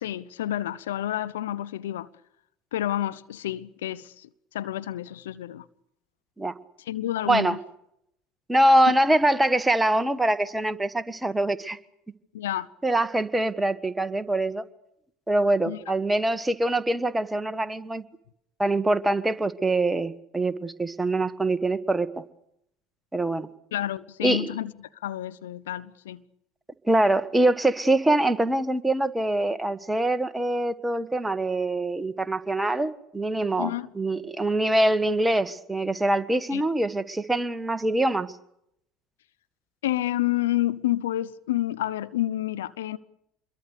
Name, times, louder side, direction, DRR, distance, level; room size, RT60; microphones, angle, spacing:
voice 1, 0.0-2.1 2.7-4.3 4.5-5.6 6.9-7.6 8.9-9.0 12.3-12.7 15.7-15.8 23.7-24.7 25.0-26.2 33.6-33.9 36.5-36.6 39.8-43.0, left 13 dB, 75° left, 0.8 m, -29 dB
voice 2, 8.5-11.8 12.8-14.6 15.3-18.0 18.6-22.2 23.1-23.5 24.2-24.5 26.9-38.3, right 1 dB, 10° right, 1.6 m, -24 dB
27.0 x 22.5 x 6.8 m
hypercardioid pair, 70°, 0 cm